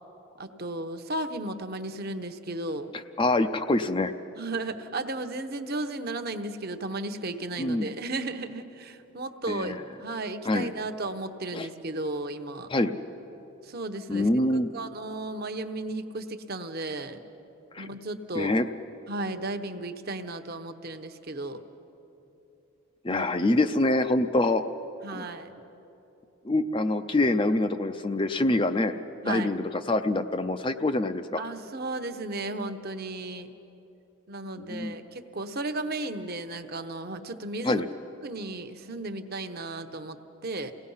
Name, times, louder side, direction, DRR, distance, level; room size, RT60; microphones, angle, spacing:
voice 1, 0.4-2.9 4.4-12.7 13.6-14.3 14.7-17.2 17.8-18.5 19.1-21.6 23.1-23.3 23.8-24.0 25.0-25.5 29.2-29.5 31.4-33.5 34.3-37.8 38.2-40.2 40.4-40.7, right 2 dB, 45° right, 8 dB, 0.9 m, -34 dB
voice 2, 3.2-4.1 7.6-7.9 9.5-9.8 10.4-10.7 11.5-11.7 12.7-12.9 14.1-14.7 17.7-17.9 18.3-18.7 23.0-24.6 25.1-25.2 26.4-28.9 29.2-31.4 34.6-35.0 37.6-37.9, left 2 dB, 20° left, 8 dB, 0.5 m, -25 dB
29.0 x 18.0 x 5.6 m, 3.0 s
head